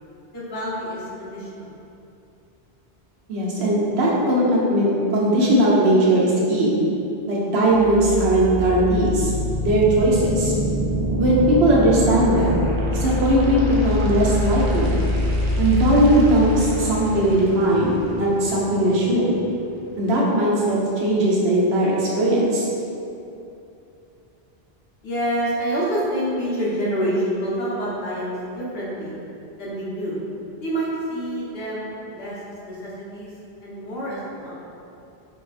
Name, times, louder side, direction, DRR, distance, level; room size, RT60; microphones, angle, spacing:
voice 1, 0.3-1.7 25.0-29.2 29.6-30.2 30.6-33.3 33.6-34.6, equal, 70° left, -8 dB, 1.1 m, -27 dB
voice 2, 3.3-6.8 7.3-9.3 9.6-10.5 11.2-12.5 12.9-15.0 15.6-19.4 20.0-22.7, right 1 dB, 80° right, -5 dB, 0.9 m, -19 dB
sound 1, 7.7-19.7, left 1 dB, 55° right, 0.5 m, -25 dB
4.5 x 2.0 x 2.4 m, 2.7 s
omnidirectional pair, 1.1 m